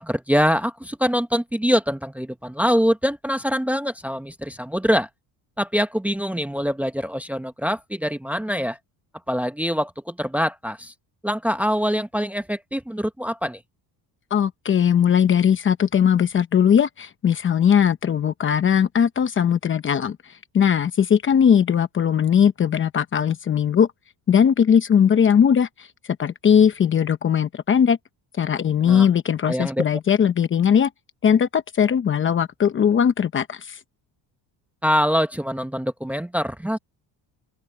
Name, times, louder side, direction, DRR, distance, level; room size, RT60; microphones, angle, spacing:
voice 1, 0.0-5.1 5.6-8.8 9.3-10.9 11.2-13.6 28.8-29.1 29.5-29.8 34.8-36.8, equal, 5° right, 0.9 m, -24 dB
voice 2, 14.3-20.2 20.5-23.9 24.3-25.7 26.2-28.0 28.4-30.9 31.2-33.8, left 8 dB, 30° left, 0.9 m, -19 dB
open air
cardioid pair, 165°, 41 cm